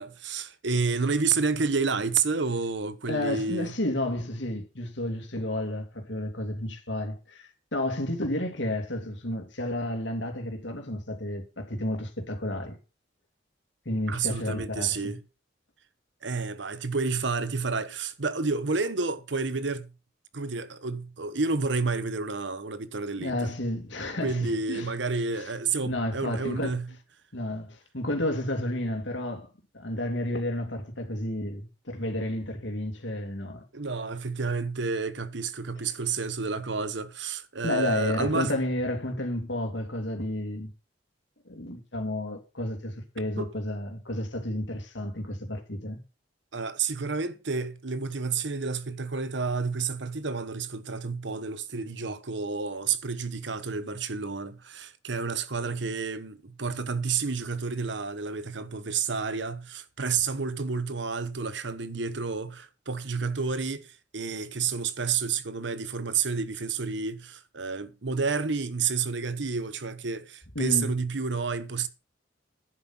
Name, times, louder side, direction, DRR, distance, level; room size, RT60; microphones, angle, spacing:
voice 1, 0.0-3.7 14.1-15.2 16.2-19.9 20.3-23.5 24.2-26.9 33.7-38.6 43.4-43.5 46.5-71.9, right 4 dB, 70° right, 1.1 m, -30 dB
voice 2, 3.1-12.8 13.8-15.1 23.2-24.9 25.3-25.5 25.8-26.7 27.3-29.5 29.7-33.6 37.6-40.7 41.4-46.0 70.5-70.9, left 1 dB, 70° left, 2.9 m, -31 dB
10.5 x 7.7 x 6.0 m
head